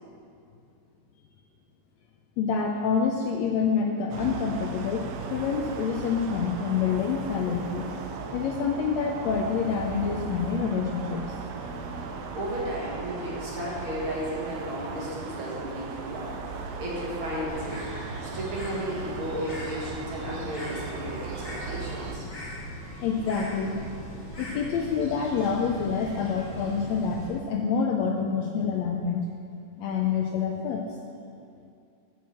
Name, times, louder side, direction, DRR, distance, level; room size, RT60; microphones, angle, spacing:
voice 1, 2.4-7.9 8.3-11.4 23.0-23.8 24.4-29.2 29.8-30.8, left 6 dB, 80° left, 2 dB, 1.6 m, -27 dB
sound 1, 4.1-22.2, right 5 dB, 75° right, 1.7 m, -37 dB
voice 2, 12.3-17.9 18.2-22.2, equal, 50° right, -5 dB, 2.1 m, -34 dB
Bird, 17.5-27.3, equal, 25° left, 1.9 m, -39 dB
8.5 x 5.6 x 7.4 m, 2.4 s
omnidirectional pair, 3.5 m